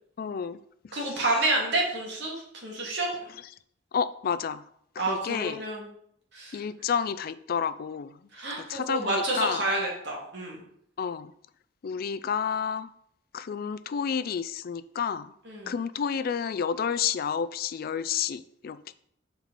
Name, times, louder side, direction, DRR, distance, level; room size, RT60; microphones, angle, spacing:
voice 1, 0.2-0.6 0.8-1.2 3.9-4.6 5.0-5.6 6.5-8.2 8.6-9.7 11.0-11.3 11.8-12.9 13.3-15.3 15.7-18.9, left 7 dB, 50° left, 0.3 m, -30 dB
voice 2, 0.9-2.3 2.6-3.1 5.0-5.9 6.3-6.6 8.3-10.6 15.5-15.7, right 2 dB, 60° right, 2.2 m, -29 dB
6.7 x 4.5 x 4.1 m
head